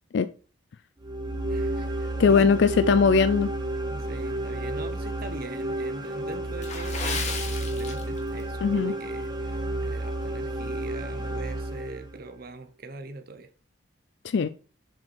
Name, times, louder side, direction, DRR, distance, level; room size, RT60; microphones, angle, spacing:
sound 1, 1.0-12.3, right 1 dB, 20° right, 1.2 m, -31 dB
voice 1, 1.5-2.6 3.9-13.5, right 3 dB, 45° right, 0.8 m, -42 dB
voice 2, 2.2-3.5 8.6-8.9 14.2-14.5, left 5 dB, 60° left, 0.3 m, -20 dB
Water / Splash splatter, 6.6-8.5 8.8-9.0 9.6-9.8 10.3-10.4, left 4 dB, 35° left, 1.3 m, -34 dB
7.2 x 5.2 x 4.5 m
head